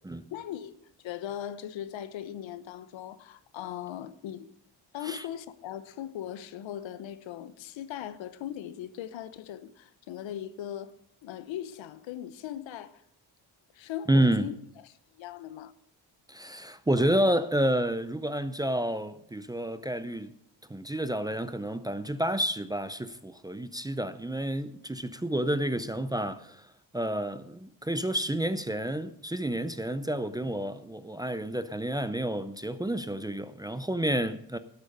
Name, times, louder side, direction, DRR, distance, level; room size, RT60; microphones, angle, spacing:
voice 1, 0.3-0.8 1.0-4.5 4.9-10.9 11.2-13.0 13.7-14.5 14.8-15.7, left 11 dB, 85° left, 1.0 m, -39 dB
voice 2, 14.1-14.5 16.3-20.3 20.7-26.7 26.9-34.6, right 1 dB, 10° right, 0.5 m, -29 dB
12.0 x 8.6 x 6.5 m
cardioid pair, 120°, 45 cm